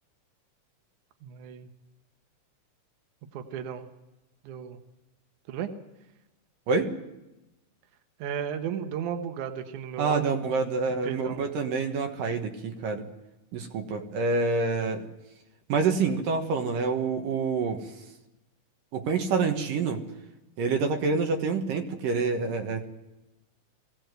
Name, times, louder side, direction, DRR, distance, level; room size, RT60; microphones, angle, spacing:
voice 1, 1.2-1.7 3.3-3.9 4.4-4.8 5.5-5.7 8.2-10.4 11.0-11.4, right 8 dB, 70° right, 7 dB, 2.6 m, -34 dB
voice 2, 10.0-13.1 13.5-15.0 15.7-17.9 18.9-20.0 20.6-22.9, right 4 dB, 85° right, 4 dB, 3.1 m, -27 dB
21.0 x 16.0 x 8.0 m, 0.99 s
omnidirectional pair, 3.8 m